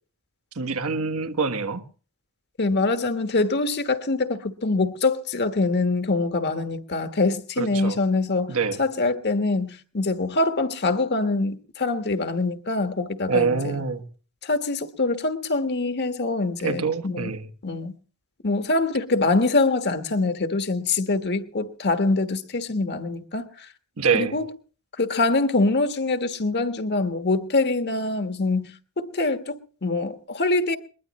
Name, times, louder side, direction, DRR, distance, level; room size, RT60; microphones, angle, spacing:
voice 1, 0.5-1.8 7.6-8.0 8.5-8.8 13.3-14.0 16.6-17.5 24.0-24.4, right 5 dB, 75° right, 1.4 m, -25 dB
voice 2, 2.6-13.8 14.4-17.3 17.6-18.0 18.4-23.7 24.1-24.5 25.0-30.8, left 3 dB, 50° left, 1.3 m, -24 dB
21.5 x 20.5 x 3.1 m
head